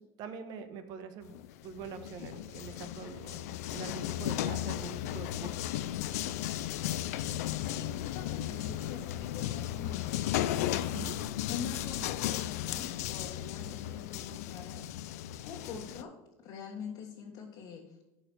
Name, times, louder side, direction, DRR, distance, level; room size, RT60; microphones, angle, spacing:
voice 1, 0.0-1.4 1.6-5.7 10.9-11.1, right 6 dB, 55° right, 8 dB, 1.2 m, -44 dB
sound 1, 1.3-16.0, left 13 dB, 85° left, 0.5 m, -35 dB
voice 2, 7.5-11.0 11.5-14.9 15.4-16.1 16.4-18.0, left 6 dB, 55° left, -2 dB, 1.7 m, -44 dB
12.5 x 4.8 x 4.4 m, 1.0 s
supercardioid pair, 115°, 8 cm